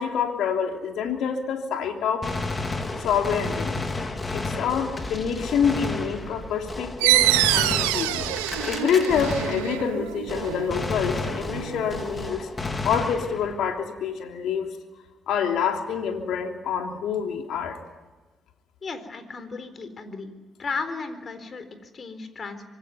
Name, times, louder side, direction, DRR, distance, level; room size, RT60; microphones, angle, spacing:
voice 1, 0.0-2.6 2.9-3.7 4.3-8.3 8.6-14.7 15.3-17.8, left 7 dB, 70° left, 4 dB, 3.2 m, -27 dB
Gunshot gunfire, 2.2-10.0 10.3-13.6, left 2 dB, 30° left, 3.8 m, -32 dB
sound 1, 7.0-12.3, right 18 dB, 85° right, 0.8 m, -26 dB
voice 2, 18.8-20.3 20.6-22.7, left 4 dB, 45° left, 10 dB, 4.1 m, -35 dB
25.5 x 20.5 x 9.6 m, 1.2 s
hypercardioid pair, 45°, 0 cm